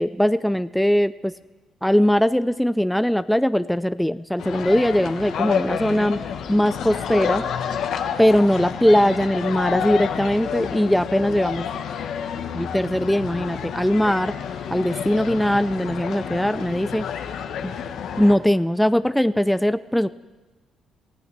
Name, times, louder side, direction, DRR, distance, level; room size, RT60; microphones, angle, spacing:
voice 1, 0.0-1.3 1.8-6.2 6.5-7.4 8.2-11.7 12.5-14.3 14.7-17.1 17.6-17.8 18.2-20.1, equal, 5° left, 14 dB, 0.4 m, -20 dB
sound 1, 4.4-18.4, left 7 dB, 75° left, 1.1 m, -29 dB
23.0 x 15.0 x 3.3 m, 1.1 s
cardioid pair, 90°, 0 cm